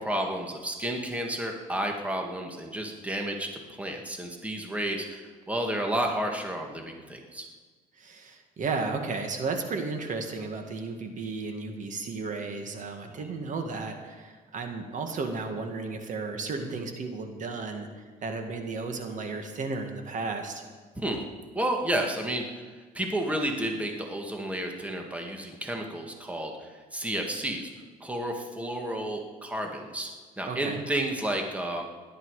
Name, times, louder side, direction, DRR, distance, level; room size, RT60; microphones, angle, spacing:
voice 1, 0.0-3.5 3.8-7.5 13.1-13.3 21.0-21.3 21.5-22.6 22.9-27.7 28.0-30.1 30.4-31.8, right 1 dB, 10° right, 2 dB, 1.8 m, -31 dB
voice 2, 8.0-20.6 30.5-30.8, right 4 dB, 50° right, 5 dB, 1.8 m, -34 dB
17.0 x 11.5 x 4.9 m, 1.4 s
cardioid pair, 110°, 17 cm